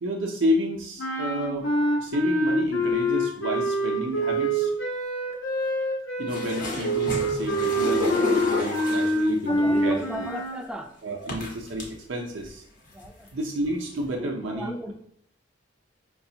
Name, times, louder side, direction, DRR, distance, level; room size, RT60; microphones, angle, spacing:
voice 1, 0.0-1.7 2.0-4.7 6.2-10.3 11.0-12.6 13.3-14.9, equal, 75° right, 0 dB, 0.5 m, -30 dB
sound 1, 1.0-10.6, equal, 70° left, 0.7 m, -26 dB
sound 2, 6.3-9.3 10.3-10.4 11.3-11.9 12.4-12.5 12.9-13.3 14.0-14.1, left 1 dB, 45° left, 0.9 m, -30 dB
voice 2, 9.4-10.9 12.9-13.3 14.2-14.9, equal, 5° right, 5 dB, 0.3 m, -35 dB
4.8 x 2.3 x 2.7 m, 0.65 s
head